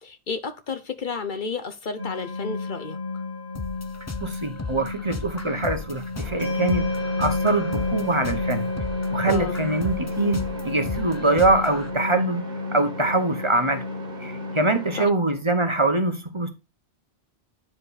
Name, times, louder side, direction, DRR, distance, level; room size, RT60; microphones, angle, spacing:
voice 1, 0.0-3.0 9.3-9.6 14.9-15.1, left 4 dB, 55° left, 0.9 m, -31 dB
sound 1, 2.0-15.1, left 3 dB, 85° left, 5.8 m, -30 dB
sound 2, 3.5-11.9, left 3 dB, 20° left, 0.6 m, -36 dB
voice 2, 4.2-8.7 9.1-12.4 12.7-13.8 14.2-16.5, right 2 dB, 30° right, 1.0 m, -24 dB
sound 3, 6.1-15.1, right 3 dB, 45° right, 1.9 m, -42 dB
9.8 x 5.1 x 4.1 m
omnidirectional pair, 1.1 m